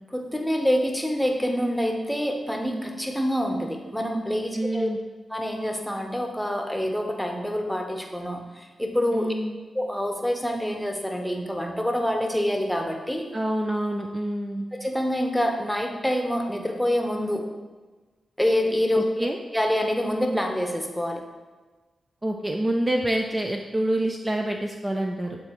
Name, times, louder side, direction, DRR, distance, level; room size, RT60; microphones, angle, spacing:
voice 1, 0.1-4.9 5.3-9.3 9.7-13.3 14.7-17.5 18.4-19.3 19.5-21.2, equal, 5° left, 2 dB, 0.9 m, -26 dB
voice 2, 4.5-5.0 9.1-9.6 13.3-14.6 18.9-19.4 22.2-25.4, right 1 dB, 25° right, 2 dB, 0.5 m, -27 dB
8.6 x 3.7 x 3.1 m, 1.3 s
cardioid pair, 50°, 0 cm